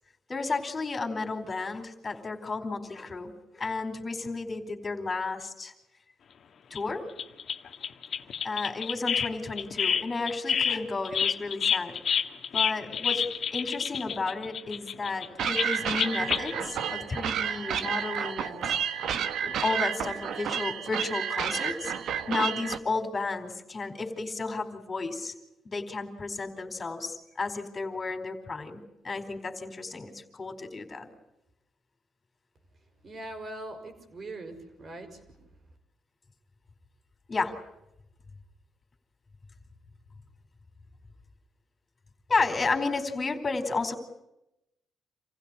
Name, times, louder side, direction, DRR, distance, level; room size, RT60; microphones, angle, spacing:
voice 1, 0.3-5.7 6.7-7.1 8.4-12.2 12.5-13.2 13.5-18.8 19.3-25.3 25.6-31.1 37.3-37.6 42.3-44.0, left 3 dB, 30° left, 7 dB, 4.5 m, -32 dB
sound 1, 6.7-6.9 7.2-9.3 9.6-16.6 17.3-17.4 17.7-17.8, left 7 dB, 55° left, 1.8 m, -29 dB
sound 2, 15.4-22.8, right 8 dB, 70° right, 1.5 m, -31 dB
voice 2, 33.0-35.4, right 2 dB, 45° right, 7 dB, 6.2 m, -41 dB
28.0 x 16.0 x 10.0 m, 0.88 s
cardioid pair, 90°, 0 cm